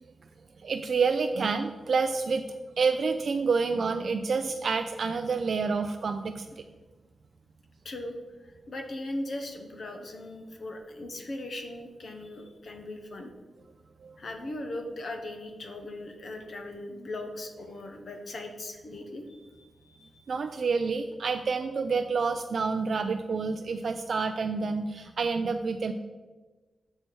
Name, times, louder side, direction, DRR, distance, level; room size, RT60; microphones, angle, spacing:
voice 1, 0.6-2.4 2.8-6.5 14.0-14.2 20.3-25.9, right 4 dB, 60° right, 7 dB, 0.3 m, -28 dB
voice 2, 7.8-8.2 8.7-13.3 14.2-20.3, left 1 dB, 60° left, 4 dB, 0.8 m, -39 dB
6.6 x 4.4 x 4.5 m, 1.3 s
wide cardioid pair, 100°, 0 cm